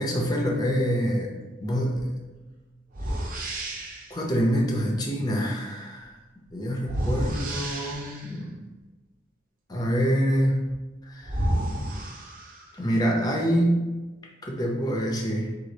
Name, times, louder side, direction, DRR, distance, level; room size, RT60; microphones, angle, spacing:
voice 1, 0.0-1.3 1.6-2.1 3.3-3.5 4.1-6.1 6.5-8.6 9.7-10.6 11.0-11.4 12.8-13.9 14.4-15.6, equal, 20° left, -1 dB, 0.6 m, -26 dB
sound 1, 2.0-2.1 2.9-4.2 6.8-8.4 10.7-10.8 11.2-12.8, right 1 dB, 45° right, 0.6 m, -30 dB
4.8 x 2.4 x 3.9 m, 1.2 s
head